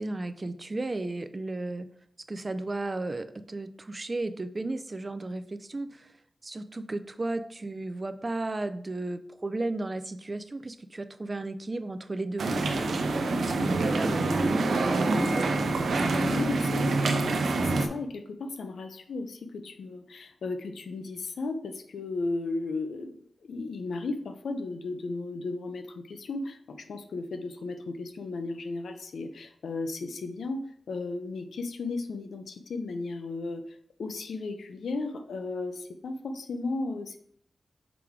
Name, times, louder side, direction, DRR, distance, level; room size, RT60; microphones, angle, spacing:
voice 1, 0.0-1.9 2.3-6.1 6.4-15.5, right 2 dB, 25° right, 10 dB, 0.4 m, -34 dB
sound 1, 12.4-17.9, right 2 dB, 85° right, 0.7 m, -26 dB
voice 2, 16.2-23.1 23.4-30.6 30.9-37.2, left 3 dB, 90° left, 7 dB, 0.7 m, -35 dB
6.0 x 3.6 x 4.6 m, 0.64 s
wide cardioid pair, 175°, 0 cm